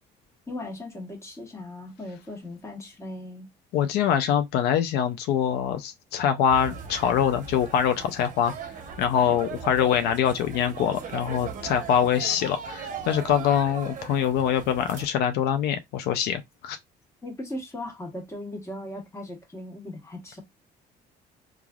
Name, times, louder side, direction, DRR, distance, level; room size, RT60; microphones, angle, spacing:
voice 1, 0.5-3.5 17.2-20.4, left 1 dB, 15° left, 1.2 m, -38 dB
voice 2, 3.7-8.5 9.0-16.8, left 9 dB, 75° left, 0.4 m, -24 dB
sound 1, 6.5-15.1, right 6 dB, 50° right, 0.7 m, -39 dB
3.2 x 2.4 x 2.3 m
cardioid pair, 110°, 17 cm